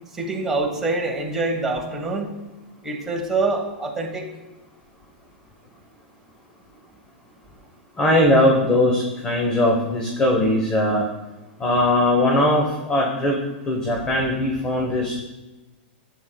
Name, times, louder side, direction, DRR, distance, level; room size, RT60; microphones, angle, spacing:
voice 1, 0.1-2.3 2.8-4.3, right 3 dB, 5° right, -1 dB, 1.3 m, -25 dB
voice 2, 8.0-11.0 11.6-13.4 13.7-15.2, left 1 dB, 15° left, 0 dB, 1.0 m, -20 dB
11.0 x 8.0 x 2.3 m, 1.1 s
hypercardioid pair, 155°, 6 cm